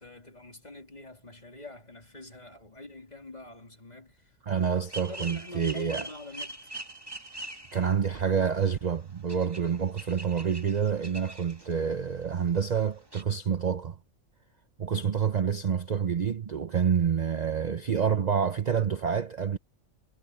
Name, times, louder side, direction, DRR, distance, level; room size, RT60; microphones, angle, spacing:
voice 1, 0.0-4.7 5.0-6.6, left 2 dB, 30° left, 3.2 m, -45 dB
voice 2, 4.5-6.1 7.7-14.0 14.8-19.6, right 7 dB, 40° right, 0.7 m, -28 dB
sound 1, 4.7-8.0 8.4-8.5 8.8-9.0 9.3-11.8 12.1-12.2 12.5-12.6 12.7-12.8 13.1-13.2, right 2 dB, 20° right, 2.4 m, -42 dB
omnidirectional pair, 1.3 m